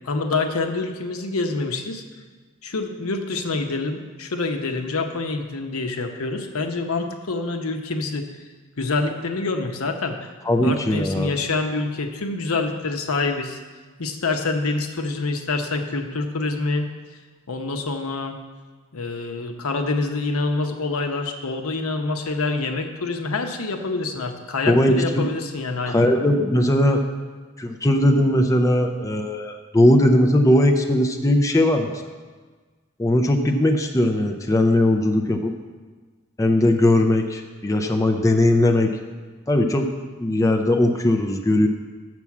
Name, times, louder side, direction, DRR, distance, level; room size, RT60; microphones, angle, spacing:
voice 1, 0.0-2.0 2.6-8.3 8.8-10.3 10.6-13.6 14.0-16.9 17.5-18.4 18.9-26.2, left 3 dB, 85° left, 5 dB, 0.8 m, -26 dB
voice 2, 10.5-11.3 24.7-25.2 25.8-27.0 27.6-31.9 33.0-35.5 36.4-38.9 39.5-39.9 40.2-41.7, left 1 dB, 15° left, 3 dB, 0.5 m, -19 dB
6.9 x 6.1 x 7.2 m, 1.4 s
head